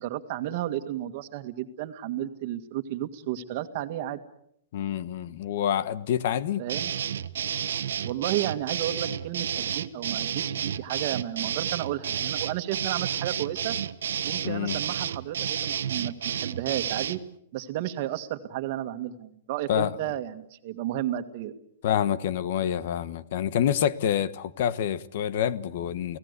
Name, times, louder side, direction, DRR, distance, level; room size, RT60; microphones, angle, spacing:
voice 1, 0.0-4.2 6.6-6.9 8.0-13.8 14.2-17.2 17.5-21.5, right 13 dB, 40° right, 1.9 m, -32 dB
voice 2, 4.7-6.6 14.4-14.8 19.7-19.9 21.8-26.2, left 10 dB, 50° left, 1.2 m, -27 dB
sound 1, 6.7-17.2, right 9 dB, 85° right, 1.2 m, -31 dB
30.0 x 17.5 x 8.2 m
hypercardioid pair, 170°, 0 cm